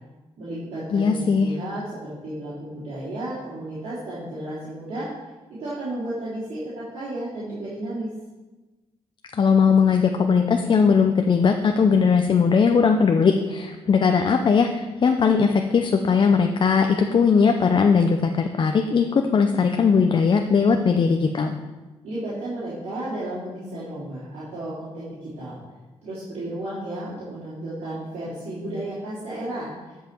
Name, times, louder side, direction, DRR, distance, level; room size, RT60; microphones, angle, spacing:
voice 1, 0.4-5.1 5.6-8.1 22.0-25.6 26.0-29.7, right 1 dB, 80° right, -12 dB, 3.4 m, -33 dB
voice 2, 0.9-1.5 9.3-21.6, left 5 dB, 45° left, 5 dB, 0.6 m, -19 dB
12.5 x 5.6 x 4.5 m, 1.2 s
cardioid pair, 90°, 11 cm